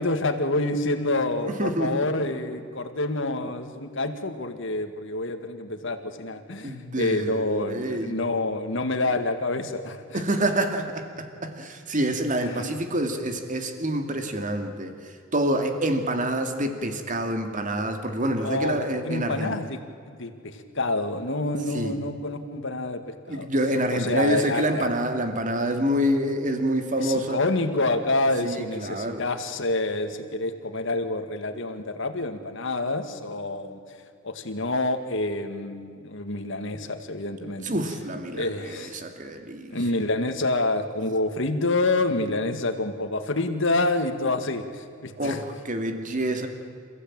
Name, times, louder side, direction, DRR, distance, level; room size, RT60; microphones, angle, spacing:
voice 1, 0.0-10.2 12.4-12.7 18.4-19.8 20.1-23.5 23.9-24.9 27.0-33.8 34.2-37.7 38.3-38.9 39.7-45.4, left 2 dB, 65° left, 7 dB, 2.1 m, -27 dB
voice 2, 1.5-2.0 6.6-8.1 10.1-19.5 21.7-22.0 23.3-27.4 28.4-29.2 37.6-39.7 45.2-46.5, right 1 dB, 40° right, 6 dB, 2.4 m, -27 dB
28.5 x 15.0 x 9.0 m, 2.4 s
head